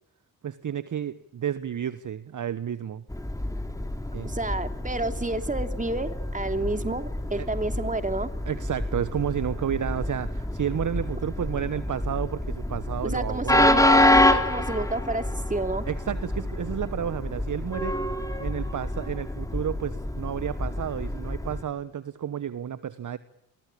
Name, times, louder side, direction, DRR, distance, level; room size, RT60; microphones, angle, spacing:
voice 1, 0.4-3.1 4.1-4.3 7.4-7.5 8.5-13.7 15.9-18.0 18.4-23.2, right 9 dB, 40° right, 15 dB, 1.2 m, -31 dB
Train, 3.1-21.6, left 1 dB, 5° left, 3.6 m, -27 dB
voice 2, 4.2-8.3 13.0-15.8, right 2 dB, 15° right, 8 dB, 3.0 m, -30 dB
29.0 x 22.5 x 8.6 m, 0.79 s
hypercardioid pair, 40°, 45 cm